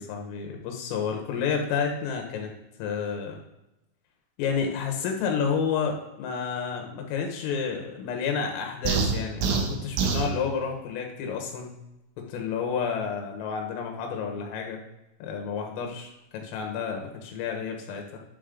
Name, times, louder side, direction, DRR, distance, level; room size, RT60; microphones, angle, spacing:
voice 1, 0.0-2.5 2.8-3.4 4.4-11.8 12.2-14.8 15.2-18.2, left 6 dB, 80° left, 2 dB, 4.0 m, -30 dB
sound 1, 8.9-10.3, right 5 dB, 75° right, 2.9 m, -25 dB
11.0 x 7.0 x 3.8 m, 0.94 s
omnidirectional pair, 5.9 m